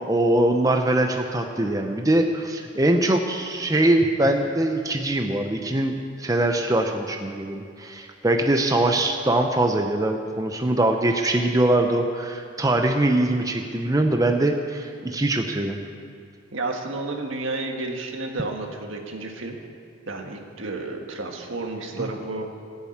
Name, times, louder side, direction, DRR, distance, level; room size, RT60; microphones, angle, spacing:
voice 1, 0.0-5.9 6.2-15.8 22.0-22.1, right 1 dB, 15° right, 4 dB, 0.6 m, -22 dB
voice 2, 16.5-19.6 20.1-22.5, right 2 dB, 70° right, 2 dB, 1.6 m, -31 dB
17.5 x 7.3 x 8.6 m, 2.4 s
head